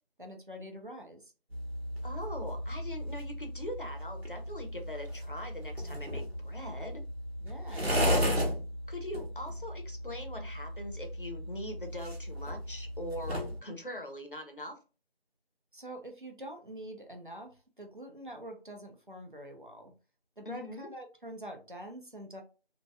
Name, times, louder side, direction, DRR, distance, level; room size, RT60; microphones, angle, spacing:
voice 1, 0.2-1.3 7.4-8.2 15.7-19.9 20.4-22.4, right 1 dB, 55° right, 4 dB, 0.7 m, -45 dB
sound 1, 1.5-13.6, equal, 75° right, 1.1 m, -35 dB
voice 2, 2.0-7.0 7.9-8.3 8.9-14.8 20.4-20.9, left 1 dB, 55° left, 4 dB, 0.7 m, -42 dB
2.8 x 2.7 x 2.3 m, 0.34 s
figure-of-eight pair, 180°, 31 cm